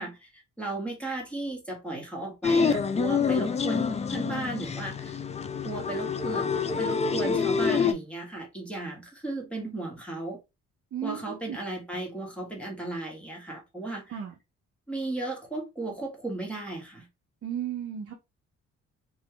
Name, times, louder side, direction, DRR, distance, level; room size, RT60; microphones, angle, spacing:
voice 1, 0.0-5.2 5.6-6.5 6.8-10.4 11.0-14.2 14.9-17.1, right 2 dB, 5° left, 1.3 m, -35 dB
sound 1, 2.4-7.9, left 5 dB, 25° left, 0.3 m, -27 dB
voice 2, 10.9-11.6 14.1-14.3 17.4-18.1, right 9 dB, 50° right, 0.7 m, -34 dB
3.1 x 2.3 x 2.9 m
cardioid pair, 90°, 30 cm